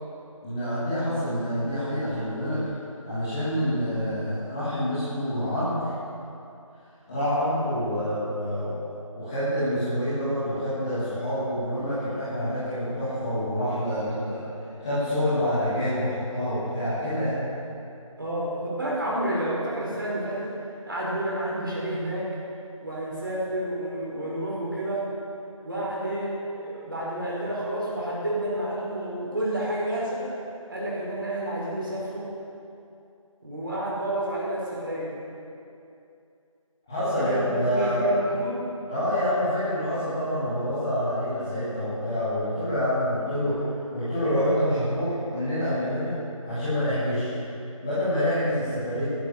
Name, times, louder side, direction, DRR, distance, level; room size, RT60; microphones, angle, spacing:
voice 1, 0.4-2.7 3.0-5.9 7.1-8.8 9.1-14.4 14.8-17.4 36.9-38.0 38.9-43.7 43.9-46.2 46.5-47.3 47.8-49.0, equal, 5° left, -15 dB, 1.6 m, -27 dB
voice 2, 18.2-20.5 20.9-22.3 22.8-25.1 25.6-30.3 30.7-32.3 33.4-35.2 37.0-37.4 37.7-38.7, right 1 dB, 40° right, -5 dB, 5.1 m, -30 dB
15.5 x 12.0 x 7.2 m, 2.6 s
figure-of-eight pair, 170°, 18 cm